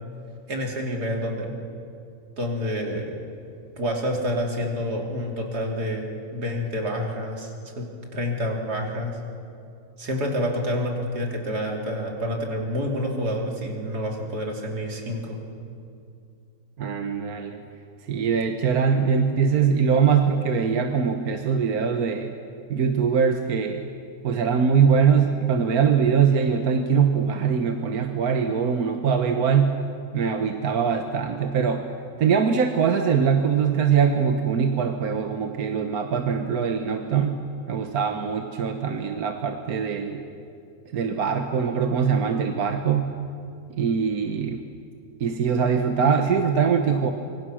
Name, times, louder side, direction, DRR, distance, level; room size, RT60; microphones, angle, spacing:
voice 1, 0.5-1.5 2.4-3.1 3.8-7.9 8.1-9.2 10.0-15.4, equal, 85° right, 0 dB, 3.6 m, -28 dB
voice 2, 16.8-17.6 18.1-22.3 22.7-23.8 24.2-29.8 30.1-31.8 32.2-40.2 40.9-43.1 43.7-44.6 45.2-47.1, right 6 dB, 70° right, 5 dB, 1.6 m, -22 dB
25.5 x 24.5 x 6.3 m, 2.4 s
omnidirectional pair, 1.7 m